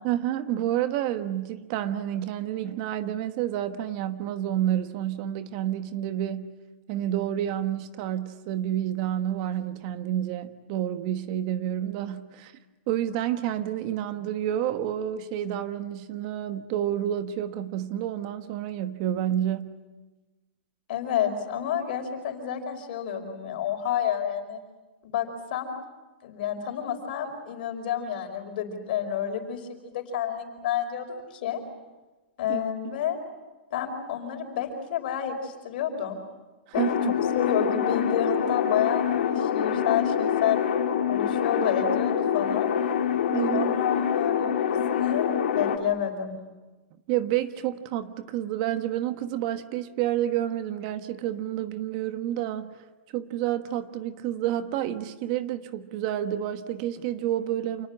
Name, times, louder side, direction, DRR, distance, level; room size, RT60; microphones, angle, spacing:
voice 1, 0.0-6.5 6.9-12.5 12.9-19.7 32.5-32.6 36.8-37.2 43.3-43.7 47.1-52.8 53.1-57.9, right 11 dB, 40° right, 1.3 m, -29 dB
voice 2, 20.9-24.6 25.0-25.7 26.2-31.6 32.4-33.2 33.7-36.2 36.7-36.8 37.4-40.6 41.1-42.7 43.5-45.3 45.5-46.4, left 8 dB, 55° left, 5.2 m, -29 dB
sound 1, 36.7-45.8, left 8 dB, 70° left, 2.9 m, -25 dB
28.0 x 19.5 x 10.0 m
hypercardioid pair, 160°, 6 cm